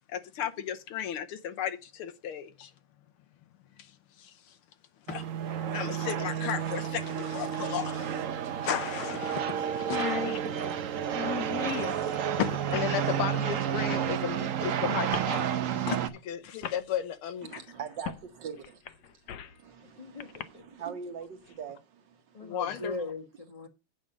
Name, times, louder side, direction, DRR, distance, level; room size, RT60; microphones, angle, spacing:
voice 1, 0.1-2.7 4.2-4.3 5.1-5.2 5.7-8.2 8.6-10.1 11.7-12.1 12.4-15.5 15.9-17.6 22.4-22.9, left 9 dB, 85° left, 1.8 m, -34 dB
sound 1, 5.1-16.1, right 9 dB, 80° right, 0.7 m, -31 dB
sound 2, 6.1-6.2 8.0-8.1 8.4-8.5 9.0-9.2 9.5-9.6 9.8-12.0 12.7-13.0 13.9-14.1 15.1-15.3 16.2-16.3 16.6-16.8 18.1-18.2 18.6-19.6 20.2-20.4, left 10 dB, 65° left, 1.1 m, -37 dB
voice 2, 17.4-18.8 19.5-22.6, right 7 dB, 60° right, 1.6 m, -42 dB
voice 3, 20.0-20.6 22.3-23.7, left 2 dB, 25° left, 0.9 m, -39 dB
8.6 x 5.5 x 6.2 m
omnidirectional pair, 2.3 m